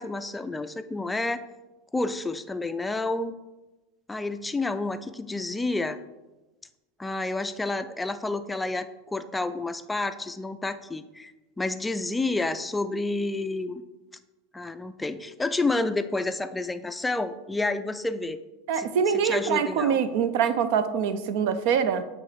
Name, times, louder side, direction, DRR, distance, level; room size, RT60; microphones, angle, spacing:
voice 1, 0.0-1.4 1.9-3.4 4.1-6.0 7.0-11.3 11.6-13.8 14.5-18.4 18.7-20.0, left 2 dB, 10° left, 10 dB, 0.4 m, -29 dB
voice 2, 18.7-22.0, right 7 dB, 60° right, 12 dB, 0.5 m, -24 dB
8.7 x 3.1 x 5.2 m, 1.1 s
figure-of-eight pair, 80°, 0 cm